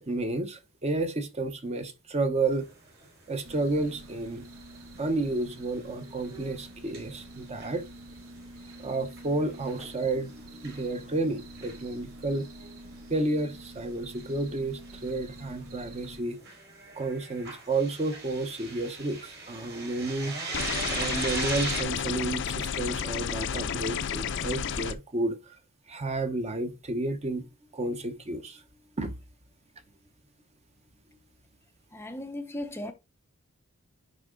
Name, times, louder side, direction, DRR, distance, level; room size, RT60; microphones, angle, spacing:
voice 1, 0.0-2.7 3.3-4.4 5.0-7.8 8.8-10.3 10.6-12.5 13.1-16.4 17.0-20.3 20.9-25.5 25.9-27.5 27.7-28.6 29.0-29.1, right 2 dB, 30° right, 0.8 m, -31 dB
sound 1, 2.5-3.1 3.4-3.5 3.9-4.0 4.3-5.4 5.7-7.8 8.2-12.1 12.5-12.9 13.2-13.3 13.6-13.7 14.2-16.0 16.4-21.8, right 3 dB, 55° right, 3.7 m, -39 dB
sound 2, 3.4-16.2, right 1 dB, 85° right, 1.4 m, -47 dB
sound 3, 20.5-24.9, left 7 dB, 60° left, 0.5 m, -31 dB
voice 2, 31.9-32.9, left 1 dB, 10° left, 0.5 m, -36 dB
10.0 x 3.6 x 3.8 m
head